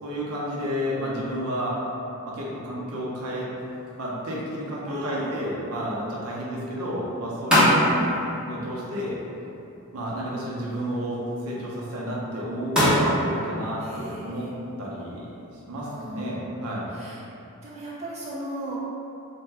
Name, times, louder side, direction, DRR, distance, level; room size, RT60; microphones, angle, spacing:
voice 1, 0.0-1.8 2.2-3.5 4.0-8.1 8.5-9.2 9.9-14.5 14.8-15.3 15.7-16.9, equal, 75° right, -5 dB, 0.6 m, -31 dB
sound 1, 3.6-16.3, equal, 5° right, 0.7 m, -29 dB
voice 2, 4.8-5.4 7.7-8.4 13.8-14.5 15.8-16.6 16.9-17.2 17.6-18.8, right 1 dB, 30° right, -7 dB, 0.3 m, -37 dB
2.6 x 2.2 x 3.2 m, 2.8 s
head